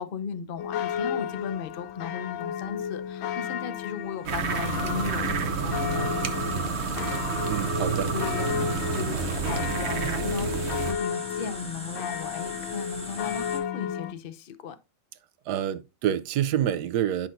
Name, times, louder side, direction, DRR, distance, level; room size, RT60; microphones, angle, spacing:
voice 1, 0.0-6.7 8.1-14.8, left 6 dB, 60° left, 0.6 m, -36 dB
sound 1, 0.6-14.1, left 9 dB, 80° left, 1.3 m, -33 dB
sound 2, 4.2-10.9, right 6 dB, 50° right, 0.9 m, -29 dB
sound 3, 4.5-13.6, equal, 5° left, 1.5 m, -41 dB
voice 2, 7.5-8.1 15.5-17.3, right 10 dB, 70° right, 1.2 m, -27 dB
10.5 x 5.9 x 2.6 m
omnidirectional pair, 1.9 m